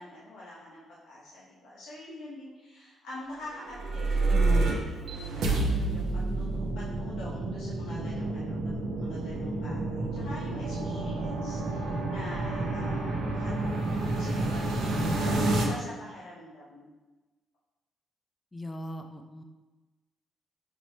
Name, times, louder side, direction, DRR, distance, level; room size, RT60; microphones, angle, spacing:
voice 1, 0.0-6.1 6.4-16.9, left 1 dB, 85° left, -7 dB, 0.7 m, -46 dB
sound 1, 3.6-15.6, right 2 dB, 80° right, 0.6 m, -29 dB
voice 2, 4.3-5.0 18.5-19.4, left 1 dB, 20° left, 4 dB, 0.3 m, -38 dB
5.2 x 2.1 x 3.0 m, 1.2 s
cardioid pair, 90°, 0 cm